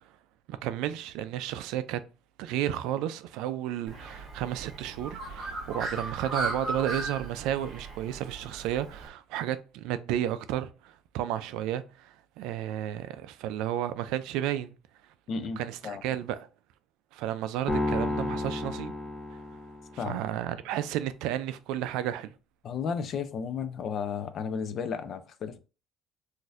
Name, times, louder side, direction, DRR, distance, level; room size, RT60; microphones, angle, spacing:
voice 1, 0.5-2.0 2.4-14.8 15.6-16.5 17.1-18.9 19.3-19.4 19.9-22.3, right 11 dB, 85° right, 0.4 m, -32 dB
Bird, 3.9-9.1, right 3 dB, 35° right, 0.9 m, -37 dB
voice 2, 15.3-16.0 20.0-20.2 22.6-25.6, left 6 dB, 45° left, 0.4 m, -33 dB
sound 1, 17.7-20.1, left 2 dB, 20° left, 0.8 m, -31 dB
4.0 x 2.6 x 2.5 m
cardioid pair, 140°, 0 cm